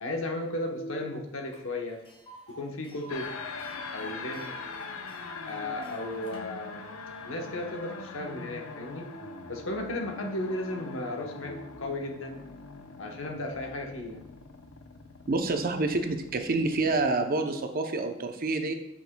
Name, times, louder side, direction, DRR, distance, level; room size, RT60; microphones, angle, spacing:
voice 1, 0.0-2.0 2.5-3.3 3.7-4.8 5.4-6.8 7.2-12.5 13.0-14.2, left 1 dB, 70° left, 2 dB, 1.0 m, -35 dB
Tick, 1.5-1.6 1.9-6.4, right 1 dB, 25° left, 1.6 m, -49 dB
sound 1, 3.1-17.1, left 4 dB, 85° left, 0.6 m, -43 dB
voice 2, 15.3-18.7, right 3 dB, 45° right, 6 dB, 0.6 m, -28 dB
8.2 x 6.0 x 2.2 m, 0.82 s
head